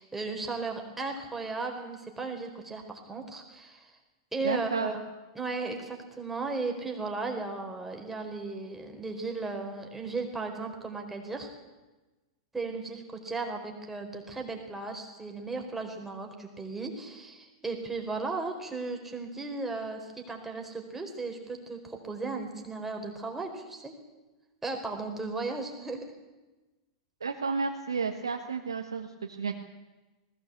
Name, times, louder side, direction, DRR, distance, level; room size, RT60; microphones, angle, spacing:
voice 1, 0.0-3.9 4.3-4.9 5.3-11.5 12.5-23.9 24.6-26.0, right 3 dB, 10° right, 3 dB, 4.6 m, -36 dB
voice 2, 4.4-4.9 27.2-29.5, right 5 dB, 85° right, 3 dB, 1.5 m, -32 dB
19.5 x 17.5 x 8.4 m, 1.1 s
hypercardioid pair, 100°, 2 cm